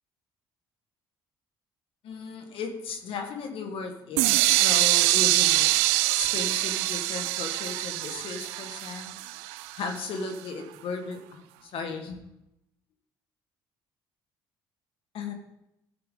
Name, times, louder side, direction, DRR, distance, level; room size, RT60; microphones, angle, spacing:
voice 1, 2.0-5.7 6.2-9.2 9.7-12.2 15.1-15.3, left 4 dB, 65° left, 4 dB, 1.5 m, -36 dB
sound 1, 4.2-10.0, right 17 dB, 85° right, 0.4 m, -24 dB
13.5 x 6.7 x 3.7 m, 0.86 s
supercardioid pair, 65°, 10 cm